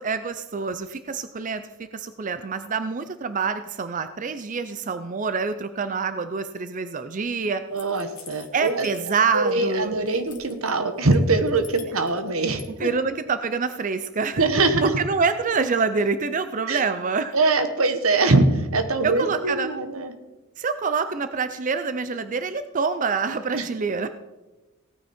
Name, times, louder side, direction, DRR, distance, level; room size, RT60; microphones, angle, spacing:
voice 1, 0.0-7.6 8.5-9.9 12.8-14.4 14.8-17.3 19.0-19.7 20.6-24.1, right 5 dB, 40° right, 10 dB, 0.5 m, -26 dB
voice 2, 7.7-8.9 9.3-12.9 14.4-15.0 16.7-16.8 17.3-20.1 23.5-23.7, right 3 dB, 85° right, 9 dB, 1.3 m, -22 dB
sound 1, 7.8-9.5 9.8-10.7 11.1-12.7, left 9 dB, 40° left, 1.7 m, -46 dB
17.0 x 9.2 x 4.3 m, 1.1 s
head